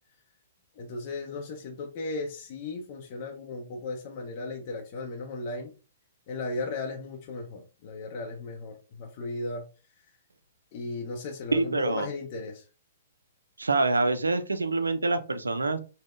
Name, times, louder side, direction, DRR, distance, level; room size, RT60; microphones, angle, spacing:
voice 1, 0.8-5.7 6.3-9.6 10.7-12.7, left 3 dB, 40° left, 0.6 m, -36 dB
voice 2, 11.5-12.1 13.6-15.8, right 3 dB, 80° right, 0.4 m, -26 dB
3.4 x 2.1 x 2.4 m
figure-of-eight pair, 120°, 0 cm